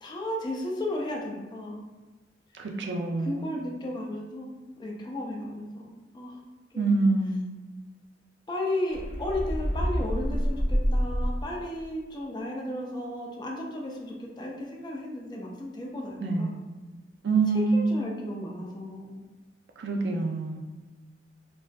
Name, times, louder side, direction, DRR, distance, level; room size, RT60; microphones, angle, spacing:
voice 1, 0.0-1.8 3.2-4.5 4.8-5.9 6.1-6.4 6.7-7.0 8.5-16.6 17.7-19.2, left 1 dB, 25° left, -1 dB, 0.4 m, -34 dB
voice 2, 2.6-3.4 6.8-7.4 16.2-16.5 17.2-17.9 19.8-20.6, right 3 dB, 65° right, 2 dB, 0.4 m, -26 dB
sound 1, 8.9-11.7, equal, 65° left, 0.8 m, -27 dB
2.5 x 2.3 x 2.2 m, 1.2 s
head